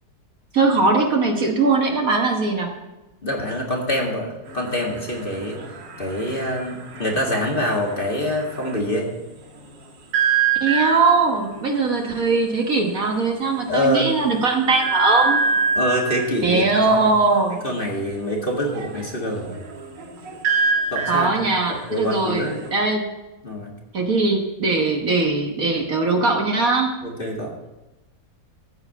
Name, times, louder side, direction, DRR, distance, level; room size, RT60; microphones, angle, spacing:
voice 1, 0.5-2.7 10.6-15.4 16.4-17.6 21.1-23.1 23.9-26.9, right 3 dB, 50° right, 2 dB, 1.6 m, -20 dB
voice 2, 3.2-4.3 4.5-5.6 6.0-9.1 13.7-14.1 15.7-17.0 17.6-19.6 20.9-21.3 21.7-22.6 23.4-23.7 27.0-27.5, equal, 30° left, -1 dB, 2.0 m, -25 dB
sound 1, 4.5-8.9 10.1-11.4 12.5-12.6 12.9-13.2 13.6-13.7 14.8-16.4 18.6-22.7, right 5 dB, 80° right, 2.1 m, -25 dB
14.5 x 4.8 x 8.2 m, 1.0 s
omnidirectional pair, 1.9 m